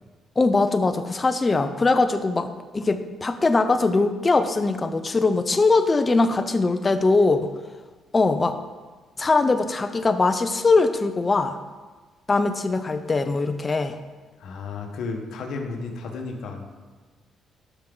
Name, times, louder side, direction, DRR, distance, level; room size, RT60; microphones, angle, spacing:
voice 1, 0.4-2.5 2.7-7.5 8.1-8.6 9.2-11.6 12.3-14.0, left 3 dB, 30° left, 9 dB, 0.7 m, -21 dB
voice 2, 14.4-16.7, left 4 dB, 75° left, 3 dB, 1.3 m, -33 dB
11.5 x 6.0 x 3.9 m, 1.3 s
cardioid pair, 90°, 0 cm